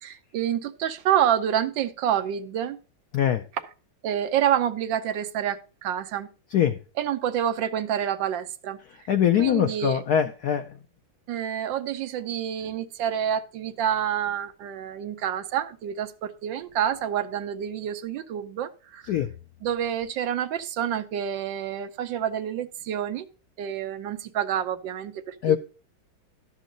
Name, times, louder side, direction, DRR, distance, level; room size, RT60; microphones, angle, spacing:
voice 1, 0.0-2.8 4.0-6.3 7.0-8.8 9.4-10.0 11.3-19.2 19.6-23.3 23.6-25.6, right 10 dB, 70° right, 9 dB, 1.3 m, -28 dB
voice 2, 9.1-10.7 19.1-19.3 25.4-25.6, left 10 dB, 75° left, 8 dB, 0.8 m, -22 dB
11.5 x 7.3 x 3.8 m, 0.34 s
omnidirectional pair, 2.2 m